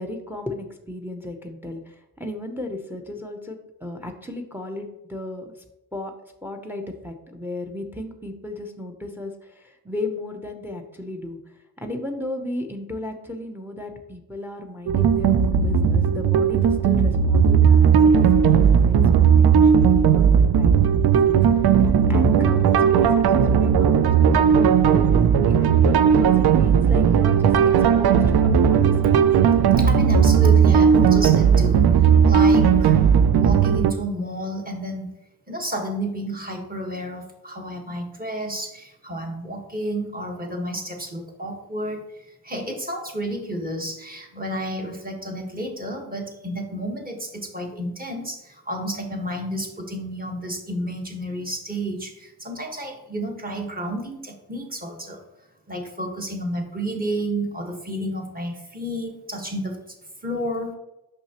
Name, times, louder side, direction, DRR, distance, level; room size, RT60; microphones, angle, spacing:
voice 1, 0.0-5.5 5.9-6.1 6.4-25.0 25.5-27.5 28.0-29.2, left 2 dB, 5° right, 5 dB, 0.6 m, -35 dB
sound 1, 14.9-33.9, right 7 dB, 75° right, 0.5 m, -16 dB
voice 2, 29.8-31.9 32.3-33.0 33.3-35.1 35.5-42.1 42.4-55.2 55.7-59.8 60.2-60.7, right 1 dB, 25° right, 1 dB, 1.3 m, -31 dB
6.1 x 5.7 x 2.9 m, 0.91 s
wide cardioid pair, 95°, 38 cm